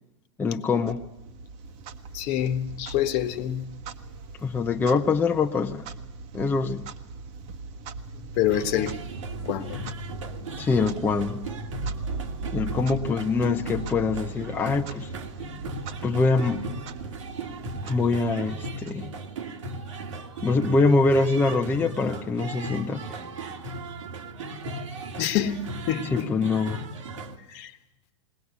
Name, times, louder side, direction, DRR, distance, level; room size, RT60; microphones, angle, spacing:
voice 1, 0.4-1.0 4.4-5.9 6.3-6.9 10.6-11.5 12.5-15.1 16.0-16.7 17.8-19.1 20.4-23.0 26.0-26.8, left 4 dB, 10° left, 0.8 m, -24 dB
Clock, 0.8-19.6, right 4 dB, 45° right, 1.3 m, -39 dB
voice 2, 2.1-3.6 8.4-9.0 9.5-9.9 25.2-26.3 27.5-27.7, left 11 dB, 45° left, 1.4 m, -27 dB
sound 1, 8.5-27.4, right 2 dB, 85° right, 2.2 m, -37 dB
21.0 x 18.5 x 8.4 m
hypercardioid pair, 130°, 16 cm